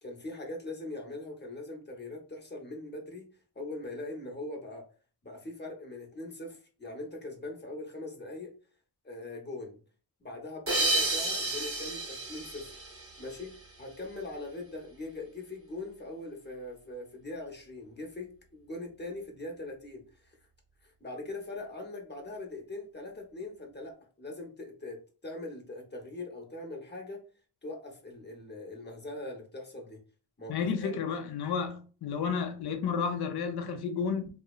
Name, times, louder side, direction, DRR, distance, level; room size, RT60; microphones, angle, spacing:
voice 1, 0.0-3.3 3.5-4.9 5.2-8.5 9.0-9.8 10.2-12.8 13.2-20.4 20.8-27.2 27.6-30.0 30.4-31.0, left 2 dB, 25° left, 0.9 m, -41 dB
sound 1, 10.7-13.7, right 2 dB, 30° right, 0.9 m, -31 dB
voice 2, 30.5-34.3, left 6 dB, 65° left, 0.6 m, -31 dB
2.7 x 2.1 x 2.3 m
cardioid pair, 55°, 42 cm